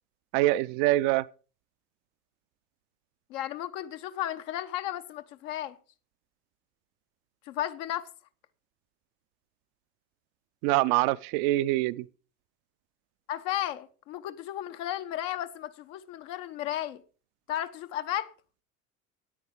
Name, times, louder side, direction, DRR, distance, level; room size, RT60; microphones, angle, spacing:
voice 1, 0.3-1.2 10.6-12.1, right 17 dB, 50° right, 0.6 m, -24 dB
voice 2, 3.3-5.8 7.5-8.1 13.3-17.0 17.5-18.3, left 12 dB, 60° left, 1.0 m, -34 dB
9.6 x 9.1 x 4.8 m
figure-of-eight pair, 65°, 43 cm